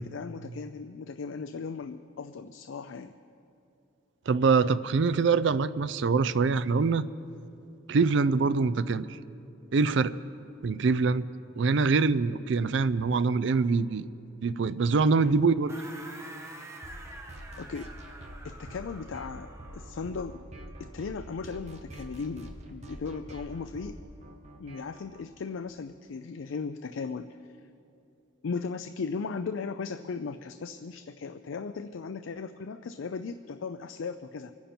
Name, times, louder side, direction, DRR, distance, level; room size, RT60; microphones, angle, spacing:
voice 1, 0.0-3.1 15.1-15.3 17.6-18.2 18.4-20.4 20.8-24.0 24.6-27.4 28.4-34.5, left 5 dB, 80° left, 10 dB, 0.4 m, -37 dB
voice 2, 4.3-7.0 7.9-9.2 9.7-10.1 10.6-11.3 11.6-14.1 14.4-15.7, right 4 dB, 65° right, 14 dB, 0.4 m, -24 dB
sound 1, 15.7-20.1, right 1 dB, 15° right, 1.1 m, -47 dB
sound 2, 16.8-25.2, right 1 dB, 35° right, 1.3 m, -46 dB
25.0 x 10.5 x 4.4 m, 2.7 s
head